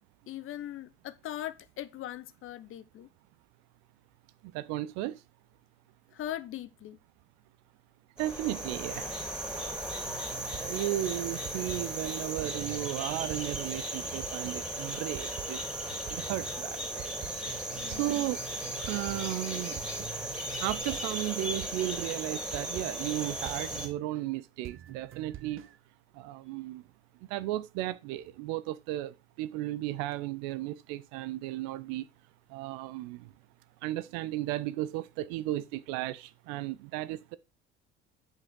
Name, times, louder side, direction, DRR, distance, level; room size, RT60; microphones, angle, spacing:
voice 1, 0.3-3.1 6.1-7.0 17.7-18.1, left 12 dB, 40° left, 0.7 m, -40 dB
voice 2, 4.5-5.2 8.2-9.2 10.6-15.6 16.1-17.1 17.9-18.4 18.8-19.8 20.6-25.6 26.2-26.8 27.3-32.1 32.5-33.3 33.8-37.4, right 15 dB, 55° right, 0.6 m, -34 dB
sound 1, 8.2-23.9, right 1 dB, ahead, 3.2 m, -36 dB
sound 2, 10.0-24.3 24.6-25.8, right 12 dB, 40° right, 0.9 m, -47 dB
7.2 x 5.4 x 3.7 m
figure-of-eight pair, 60°, 32 cm